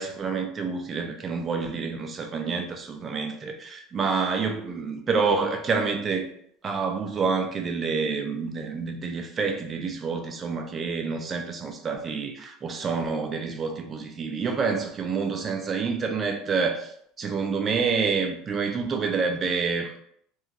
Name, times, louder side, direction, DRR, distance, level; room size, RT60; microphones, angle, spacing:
voice 1, 0.0-6.3 6.6-16.9 17.2-19.9, right 5 dB, 20° right, 4 dB, 0.3 m, -28 dB
2.9 x 2.3 x 2.5 m, 0.67 s
cardioid pair, 170°, 0 cm